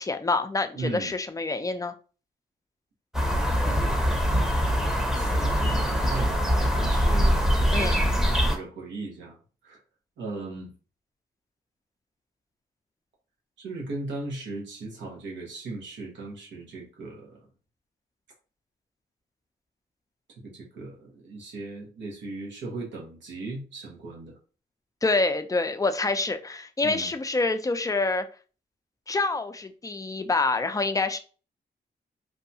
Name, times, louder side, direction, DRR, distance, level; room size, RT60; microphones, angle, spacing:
voice 1, 0.0-1.9 7.7-8.1 25.0-28.3 29.1-31.2, left 3 dB, 20° left, 8 dB, 0.4 m, -26 dB
voice 2, 0.7-1.1 5.1-7.4 7.7-9.4 9.6-9.8 10.2-10.7 13.6-17.4 20.4-24.3 26.8-27.1, right 3 dB, 85° right, -2 dB, 1.0 m, -37 dB
sound 1, 3.1-8.6, equal, 5° right, 0.8 m, -23 dB
2.7 x 2.2 x 2.7 m, 0.37 s
cardioid pair, 55°, 19 cm